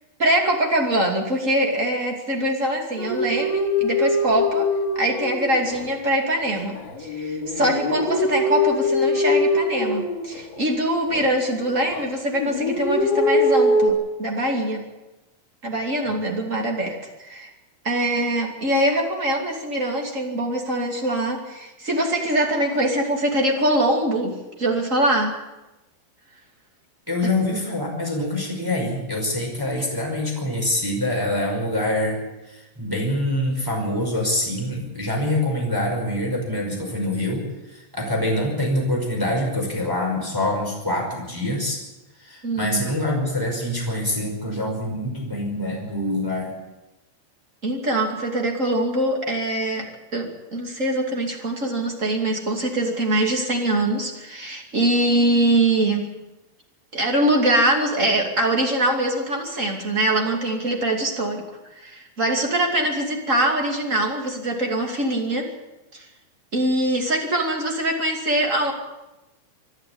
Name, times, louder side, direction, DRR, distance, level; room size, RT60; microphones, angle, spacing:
voice 1, 0.2-4.7 4.9-14.8 15.6-17.5 17.8-25.3 42.4-42.8 47.6-49.9 50.1-56.1 56.9-61.4 61.7-65.5 65.9-66.1 66.5-68.7, right 1 dB, 25° right, 1 dB, 1.6 m, -23 dB
sound 1, 3.0-5.9 6.4-10.6 11.1-12.0 12.3-13.9, left 2 dB, 65° left, 5.5 m, -23 dB
voice 2, 27.1-32.2 32.5-41.8 42.2-46.5, left 1 dB, 5° right, -1 dB, 4.7 m, -25 dB
27.0 x 11.0 x 8.6 m, 1.0 s
omnidirectional pair, 5.5 m